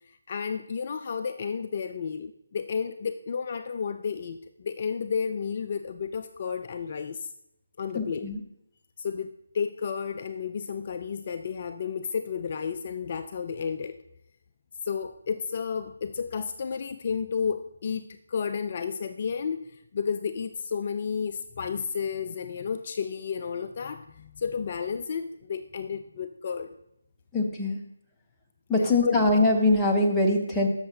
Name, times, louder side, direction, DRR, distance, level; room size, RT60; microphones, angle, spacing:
voice 1, 0.1-7.3 7.8-8.3 9.0-14.0 14.8-26.8 28.7-29.2, left 6 dB, 40° left, 8 dB, 0.4 m, -32 dB
voice 2, 7.9-8.4 27.3-27.8 28.7-30.7, left 2 dB, 5° left, -3 dB, 1.0 m, -23 dB
13.0 x 6.6 x 2.8 m, 0.80 s
figure-of-eight pair, 155°, 0 cm